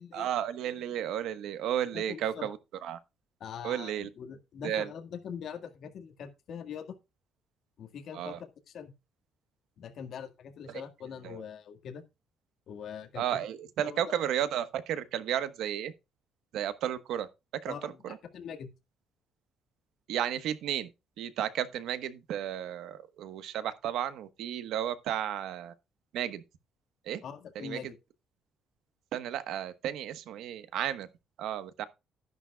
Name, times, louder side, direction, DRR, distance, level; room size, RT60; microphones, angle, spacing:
voice 1, 0.1-2.6 2.8-3.0 3.6-4.1 4.6-4.9 8.1-8.4 11.2-11.4 13.2-15.9 16.5-17.3 17.6-18.2 20.1-20.9 21.2-25.7 26.1-26.4 27.1-27.2 27.5-27.9 29.1-31.1 31.4-31.9, right 10 dB, 75° right, 1.2 m, -33 dB
voice 2, 1.9-2.5 3.4-7.0 7.8-8.9 9.8-12.0 12.7-13.2 13.8-14.0 17.7-18.7 27.2-28.0, left 7 dB, 55° left, 1.8 m, -43 dB
12.0 x 11.0 x 2.3 m
cardioid pair, 140°, 0 cm